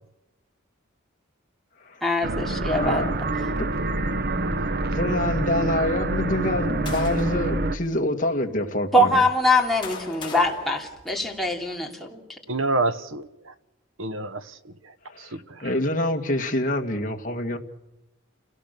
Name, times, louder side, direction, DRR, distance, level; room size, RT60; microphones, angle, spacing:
voice 1, 2.0-3.3 8.9-12.4, left 1 dB, ahead, 2.9 m, -23 dB
sound 1, 2.2-7.8, right 2 dB, 50° right, 1.0 m, -26 dB
voice 2, 2.7-3.1 3.6-3.7 4.9-9.2 15.1-17.6, left 1 dB, 40° left, 2.0 m, -26 dB
sound 2, 6.4-7.5 8.3-8.4 9.3-11.6, left 4 dB, 25° left, 3.8 m, -40 dB
voice 3, 12.5-13.5 14.0-15.7, right 3 dB, 70° right, 1.1 m, -29 dB
29.5 x 18.0 x 6.8 m
head